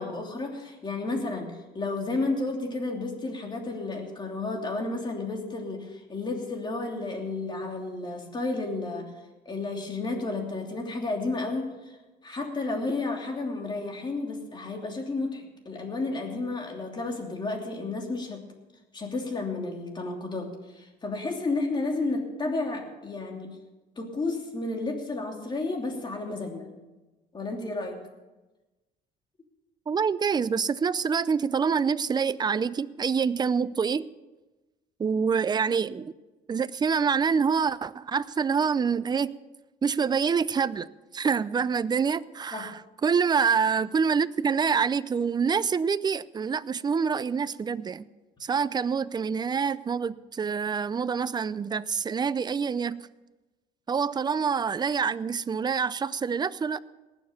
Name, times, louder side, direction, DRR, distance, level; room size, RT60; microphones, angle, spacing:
voice 1, 0.0-9.1 9.4-12.0 12.2-18.4 18.9-23.6 24.0-26.7 27.3-28.0 42.5-42.7, left 3 dB, 25° left, 2 dB, 3.0 m, -32 dB
voice 2, 29.9-34.1 35.0-36.1 36.5-39.3 39.8-40.9 41.1-48.0 48.4-53.0 53.9-56.8, right 6 dB, 25° right, 17 dB, 0.5 m, -26 dB
19.0 x 7.2 x 6.9 m, 1.1 s
cardioid pair, 110°, 17 cm